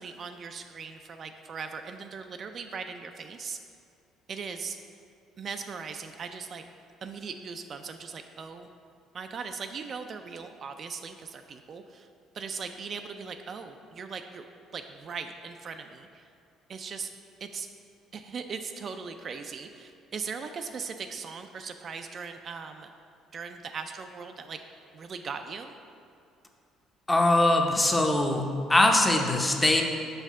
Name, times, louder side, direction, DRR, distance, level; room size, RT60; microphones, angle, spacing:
voice 1, 0.0-3.6 4.3-4.8 5.4-6.6 7.0-8.7 9.1-12.1 12.3-14.4 14.7-16.3 16.7-17.1 17.4-17.7 18.1-22.9 23.3-24.6 24.9-25.8, right 5 dB, 45° right, 6 dB, 0.3 m, -39 dB
voice 2, 27.1-28.4 28.7-29.8, left 2 dB, 15° left, 2 dB, 0.7 m, -22 dB
5.5 x 5.3 x 3.6 m, 2.5 s
cardioid pair, 95°, 0 cm